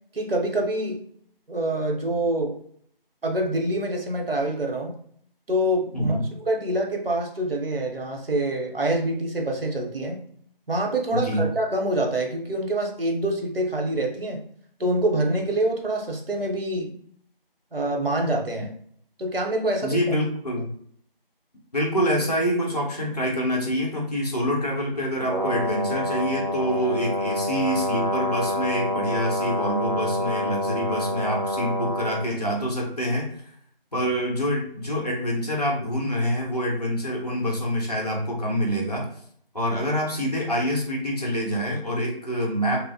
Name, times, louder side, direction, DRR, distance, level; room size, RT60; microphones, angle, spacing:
voice 1, 0.1-1.0 1.5-2.5 3.2-5.0 5.5-6.2 6.5-10.2 10.7-14.4 14.8-16.9 17.7-18.7 19.2-20.0, right 1 dB, 75° right, 1 dB, 0.8 m, -25 dB
voice 2, 5.9-6.2 11.1-11.4 19.8-20.7 21.7-33.3 33.9-39.1 39.5-42.8, equal, 45° left, -2 dB, 0.8 m, -26 dB
Brass instrument, 25.3-32.3, left 1 dB, 45° right, 0.6 m, -27 dB
2.9 x 2.0 x 2.7 m, 0.62 s
figure-of-eight pair, 170°, 29 cm